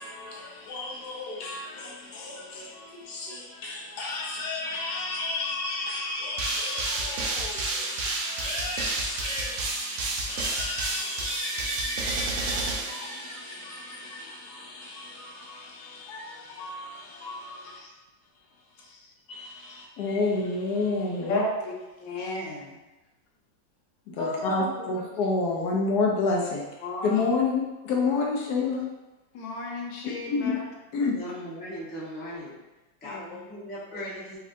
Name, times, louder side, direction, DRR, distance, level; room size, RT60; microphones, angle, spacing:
voice 1, 0.0-17.8 19.3-21.4 24.1-28.8 30.0-30.6 30.9-31.2, left 3 dB, 70° left, -2 dB, 1.1 m, -31 dB
sound 1, 6.4-13.6, right 2 dB, 85° right, 0.6 m, -31 dB
voice 2, 21.3-21.7 22.0-22.7 24.2-24.7 26.8-27.2 29.3-30.6 33.0-33.2, left 2 dB, 90° left, -2 dB, 1.4 m, -33 dB
voice 3, 31.1-32.5 33.0-34.4, equal, 10° left, -10 dB, 0.6 m, -38 dB
4.2 x 2.5 x 2.5 m, 1.1 s
omnidirectional pair, 1.9 m